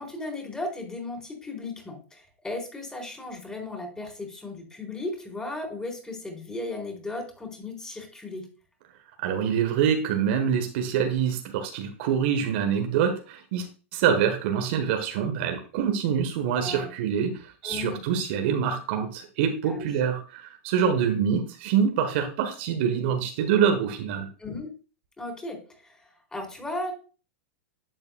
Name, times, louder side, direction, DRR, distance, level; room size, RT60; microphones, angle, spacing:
voice 1, 0.0-8.5 16.6-16.9 17.6-18.0 19.7-19.9 24.4-24.7 25.2-26.9, left 2 dB, 10° left, 1 dB, 4.3 m, -36 dB
voice 2, 9.2-13.7 13.9-24.3, right 8 dB, 55° right, 6 dB, 1.3 m, -25 dB
11.0 x 7.9 x 2.3 m, 0.35 s
hypercardioid pair, 100°, 7 cm